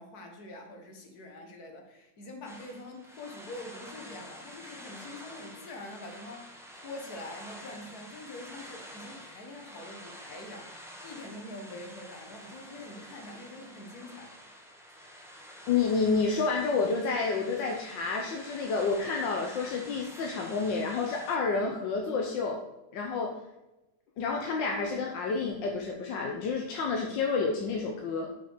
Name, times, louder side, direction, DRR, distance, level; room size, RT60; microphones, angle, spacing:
voice 1, 0.0-14.3, left 2 dB, 60° left, 3 dB, 1.8 m, -45 dB
sound 1, 2.4-21.4, equal, ahead, 0.8 m, -48 dB
voice 2, 15.7-22.6 22.9-23.4 24.2-28.3, left 4 dB, 85° left, 1 dB, 1.6 m, -29 dB
6.1 x 5.5 x 6.6 m, 0.98 s
omnidirectional pair, 1.9 m